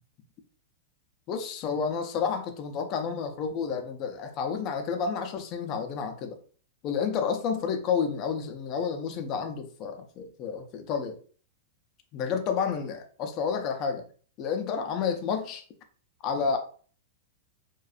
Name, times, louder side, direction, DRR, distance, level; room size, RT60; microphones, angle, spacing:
voice 1, 1.3-6.4 6.8-11.2 12.1-14.0 14.4-15.6 16.2-16.6, left 6 dB, 30° left, 0.3 m, -30 dB
2.4 x 2.1 x 2.5 m
supercardioid pair, 175°, 0 cm